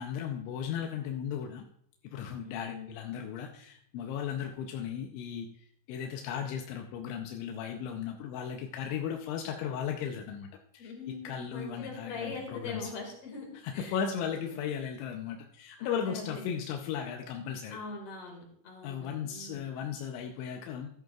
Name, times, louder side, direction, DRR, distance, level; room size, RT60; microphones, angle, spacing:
voice 1, 0.0-1.6 2.0-10.9 11.2-12.9 13.6-17.8 18.8-20.9, left 8 dB, 80° left, 3 dB, 2.7 m, -36 dB
voice 2, 2.4-2.9 10.8-13.5 13.7-14.0 14.4-14.7 15.8-16.4 17.7-19.8, left 4 dB, 55° left, 2 dB, 1.7 m, -42 dB
14.0 x 10.5 x 2.4 m, 0.67 s
omnidirectional pair, 6.0 m